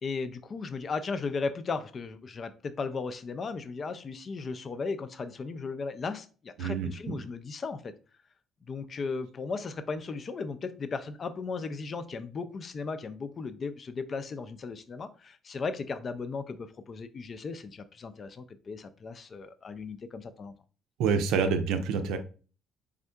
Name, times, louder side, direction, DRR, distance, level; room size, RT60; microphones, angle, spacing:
voice 1, 0.0-7.9 8.7-20.5, left 4 dB, 40° left, 12 dB, 0.4 m, -36 dB
voice 2, 6.6-6.9 21.0-22.2, right 5 dB, 65° right, 8 dB, 0.5 m, -27 dB
4.2 x 3.6 x 2.2 m, 0.37 s
figure-of-eight pair, 50°, 0 cm